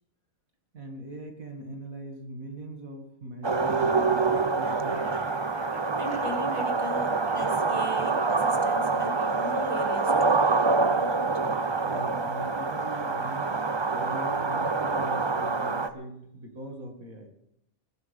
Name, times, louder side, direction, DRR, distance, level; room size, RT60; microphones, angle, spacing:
voice 1, 0.7-5.3 11.8-13.6 13.9-17.3, right 1 dB, 70° right, 3 dB, 2.8 m, -41 dB
sound 1, 3.4-15.9, right 4 dB, 35° right, 0.4 m, -26 dB
sound 2, 3.9-9.9, equal, 5° left, 4.3 m, -45 dB
voice 2, 6.0-10.3 10.8-11.2, right 1 dB, 20° left, 2 dB, 1.9 m, -38 dB
21.0 x 12.0 x 3.6 m, 0.78 s
omnidirectional pair, 1.5 m